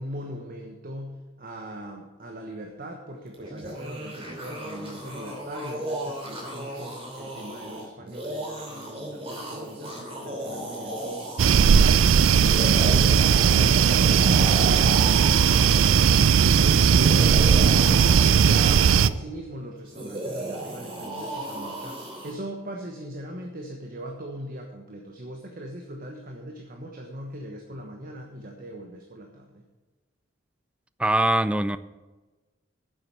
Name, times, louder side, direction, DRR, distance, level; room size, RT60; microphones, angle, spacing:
voice 1, 0.0-16.1 16.4-29.6, right 1 dB, 45° right, 2 dB, 1.2 m, -39 dB
sound 1, 3.3-11.8 12.3-16.3 16.9-19.1 19.9-22.3, right 1 dB, 30° right, 2.9 m, -35 dB
sound 2, 11.4-19.1, right 7 dB, 80° right, 0.4 m, -18 dB
voice 2, 31.0-31.8, right 1 dB, 5° right, 14 dB, 0.4 m, -22 dB
9.8 x 7.7 x 7.6 m, 1.2 s
head